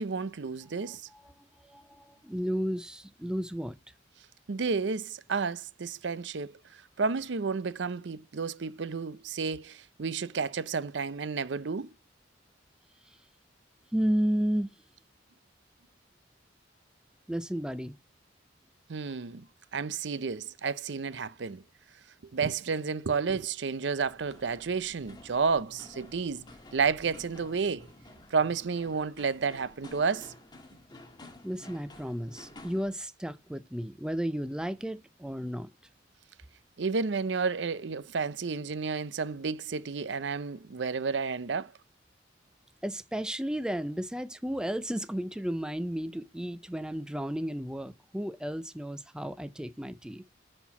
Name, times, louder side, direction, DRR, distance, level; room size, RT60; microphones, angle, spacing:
voice 1, 0.0-1.0 4.5-11.9 18.9-19.5 19.7-21.6 22.2-26.4 26.7-27.9 28.3-30.3 36.8-41.7, right 5 dB, 70° right, 0.6 m, -31 dB
voice 2, 0.8-1.3 1.6-3.8 13.9-14.7 17.3-17.9 31.4-35.7 42.8-50.2, equal, 5° right, 0.4 m, -33 dB
sound 1, 23.9-32.9, left 2 dB, 20° left, 1.5 m, -52 dB
9.9 x 4.4 x 5.7 m
head